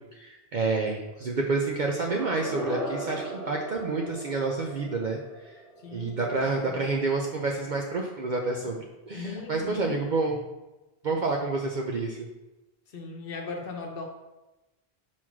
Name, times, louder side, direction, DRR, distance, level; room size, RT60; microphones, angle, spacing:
voice 1, 0.0-5.6 5.9-10.4 11.0-12.3, right 3 dB, 55° right, 0 dB, 0.7 m, -29 dB
sound 1, 2.0-6.9, right 1 dB, ahead, 1.8 m, -38 dB
voice 2, 5.8-6.8 8.6-8.7 9.1-10.4 12.9-14.1, left 3 dB, 65° left, 2 dB, 1.1 m, -39 dB
4.6 x 4.3 x 5.8 m, 1.0 s
omnidirectional pair, 1.1 m